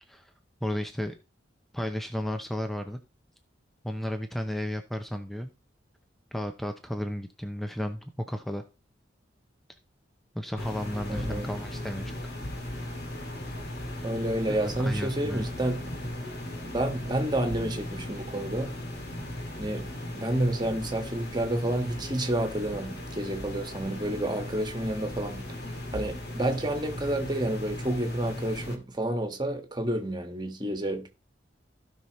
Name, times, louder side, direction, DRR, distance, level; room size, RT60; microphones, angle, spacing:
voice 1, 0.6-1.2 1.7-3.0 3.8-5.5 6.3-8.7 10.3-12.2 14.5-15.4, equal, ahead, 0.6 m, -33 dB
sound 1, 10.6-28.7, left 1 dB, 55° left, 2.0 m, -37 dB
voice 2, 11.1-11.5 14.0-15.8 16.6-18.7 19.6-19.9 20.1-25.5 25.9-31.1, right 1 dB, 25° right, 1.5 m, -30 dB
15.5 x 5.7 x 3.1 m
head